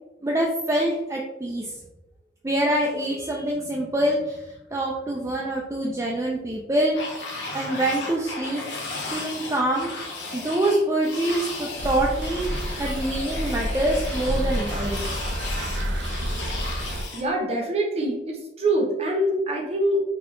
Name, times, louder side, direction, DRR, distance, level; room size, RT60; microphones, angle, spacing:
voice 1, 0.2-1.8 2.4-7.0 7.5-8.8 9.1-9.9 10.3-12.5 12.8-15.1, right 1 dB, 15° right, -2 dB, 0.3 m, -25 dB
sound 1, 6.9-17.3, left 2 dB, 90° left, 0.9 m, -35 dB
sound 2, 11.8-17.0, equal, 85° right, 0.5 m, -29 dB
voice 2, 17.1-20.0, right 1 dB, 35° right, 0 dB, 0.8 m, -24 dB
4.8 x 2.4 x 3.0 m, 0.99 s
head